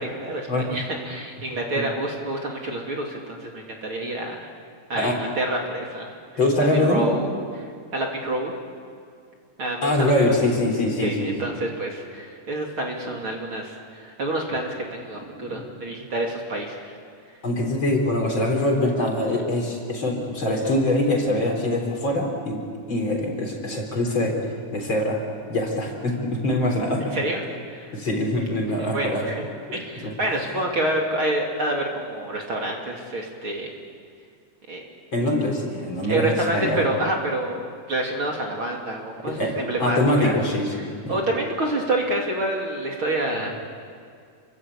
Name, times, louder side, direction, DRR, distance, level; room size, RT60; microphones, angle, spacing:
voice 1, 0.0-4.5 4.9-6.1 6.7-7.3 7.5-8.5 9.6-10.1 11.0-16.9 27.1-27.4 27.7-27.9 28.8-29.4 29.7-33.7 34.7-34.8 36.1-40.4 40.7-40.8 41.1-43.6, right 1 dB, 45° right, 0 dB, 3.3 m, -28 dB
voice 2, 6.4-7.1 9.8-11.3 15.4-15.6 17.4-24.4 24.7-25.2 25.5-27.1 27.9-29.2 29.7-30.1 35.1-36.8 39.2-41.2, left 1 dB, 40° left, 1 dB, 4.8 m, -23 dB
28.5 x 23.5 x 8.6 m, 2.2 s
omnidirectional pair, 3.5 m